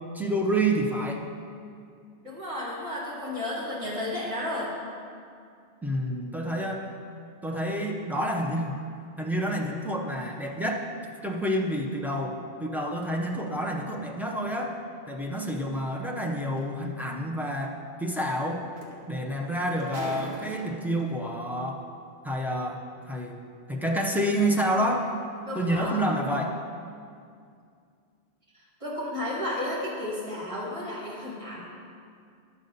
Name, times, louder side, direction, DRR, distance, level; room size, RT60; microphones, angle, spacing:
voice 1, 0.1-1.2 5.8-6.8 7.4-8.8 9.2-10.9 11.2-14.8 15.1-18.7 19.1-21.8 22.2-23.4 23.7-25.1 25.5-26.6, right 1 dB, ahead, -1 dB, 0.6 m, -28 dB
voice 2, 2.2-4.7 25.5-26.0 28.8-31.6, left 1 dB, 30° right, -7 dB, 2.2 m, -32 dB
sound 1, 16.6-16.7 18.4-18.5 18.8-21.0 21.9-22.0, right 1 dB, 65° right, 1.3 m, -41 dB
11.0 x 4.1 x 6.7 m, 2.3 s
omnidirectional pair, 1.1 m